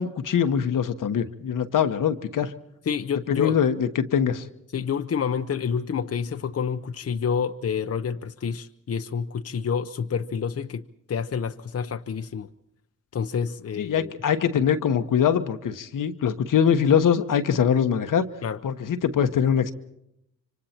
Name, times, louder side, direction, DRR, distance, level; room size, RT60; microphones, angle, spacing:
voice 1, 0.0-2.5 3.3-4.5 13.8-18.3 18.6-19.7, left 8 dB, 75° left, 8 dB, 1.2 m, -23 dB
voice 2, 2.9-3.6 4.7-12.5 13.1-14.1 18.4-18.6, left 6 dB, 50° left, 8 dB, 0.8 m, -28 dB
26.0 x 24.5 x 4.4 m, 0.79 s
cardioid pair, 50°, 32 cm